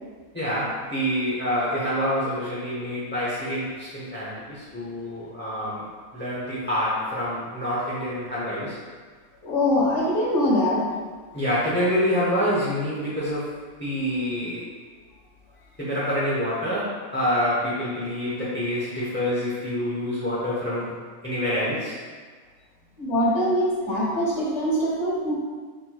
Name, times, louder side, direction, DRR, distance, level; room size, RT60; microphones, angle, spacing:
voice 1, 0.3-8.8 11.3-13.5 13.8-14.6 15.8-21.0 21.2-22.0, equal, 15° left, -9 dB, 0.5 m, -27 dB
voice 2, 9.4-10.8 23.0-25.3, left 1 dB, 60° left, -6 dB, 1.5 m, -23 dB
6.1 x 2.9 x 2.3 m, 1.5 s
omnidirectional pair, 1.4 m